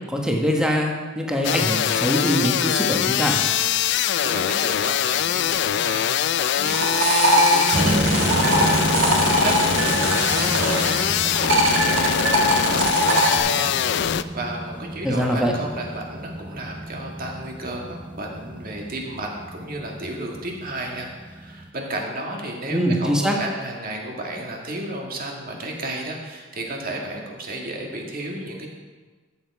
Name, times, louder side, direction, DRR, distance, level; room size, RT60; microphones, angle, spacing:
voice 1, 0.1-3.4 15.0-15.5 22.7-23.3, equal, 5° right, 0 dB, 1.3 m, -23 dB
sound 1, 1.4-14.2, left 10 dB, 60° left, 0.3 m, -23 dB
voice 2, 3.7-13.7 14.3-28.7, right 1 dB, 45° right, 0 dB, 1.9 m, -33 dB
sound 2, 6.4-11.0 11.4-13.4, right 1 dB, 75° right, 1.7 m, -21 dB
sound 3, 7.7-21.7, right 1 dB, 25° right, 0.5 m, -30 dB
13.0 x 7.3 x 4.8 m, 1.4 s
head